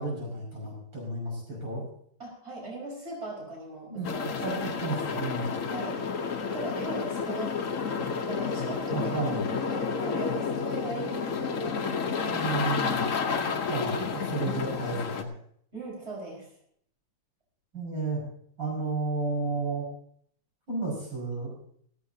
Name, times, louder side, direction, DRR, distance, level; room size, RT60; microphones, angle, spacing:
voice 1, 0.0-1.9 3.9-5.5 8.9-9.4 12.3-13.0 13.7-15.3 17.7-18.2 18.6-19.9 20.7-21.5, right 3 dB, 80° right, -3 dB, 6.5 m, -32 dB
voice 2, 2.2-4.3 5.7-7.7 8.3-12.7 15.7-16.5, right 2 dB, 30° right, -3 dB, 5.4 m, -39 dB
sound 1, 4.0-15.2, left 5 dB, 50° left, 1.2 m, -30 dB
16.0 x 14.5 x 2.8 m, 0.64 s
omnidirectional pair, 2.0 m